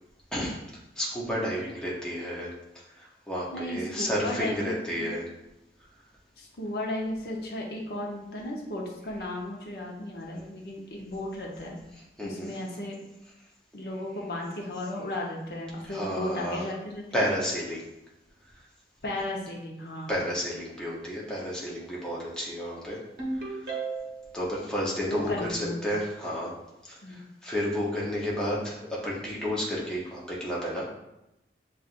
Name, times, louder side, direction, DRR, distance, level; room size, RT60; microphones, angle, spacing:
voice 1, 1.0-2.5 3.0-5.3 12.2-12.5 15.9-16.7 17.1-17.8 20.1-23.0 24.3-26.5 26.8-30.8, equal, 5° left, -6 dB, 0.7 m, -31 dB
voice 2, 3.5-5.1 6.4-11.8 12.2-13.0 13.7-17.3 19.0-20.2 25.1-25.8 27.0-27.2, left 1 dB, 65° left, -1 dB, 0.8 m, -35 dB
Ringtone, 23.2-24.4, right 3 dB, 55° right, 1.0 m, -33 dB
7.2 x 2.5 x 2.5 m, 0.90 s
head